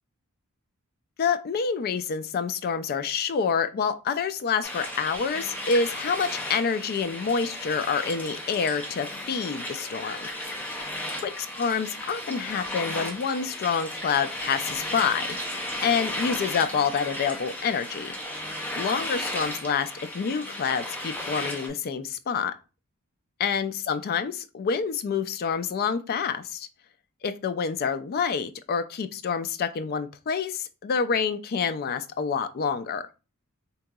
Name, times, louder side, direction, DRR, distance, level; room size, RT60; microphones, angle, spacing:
voice 1, 1.2-10.3 11.2-11.3 11.6-18.2 18.8-22.5 23.4-26.7 27.2-33.0, left 6 dB, 45° left, 10 dB, 0.3 m, -27 dB
sound 1, 4.6-21.7, left 1 dB, 10° left, 0.6 m, -34 dB
3.6 x 2.9 x 2.2 m, 0.32 s
head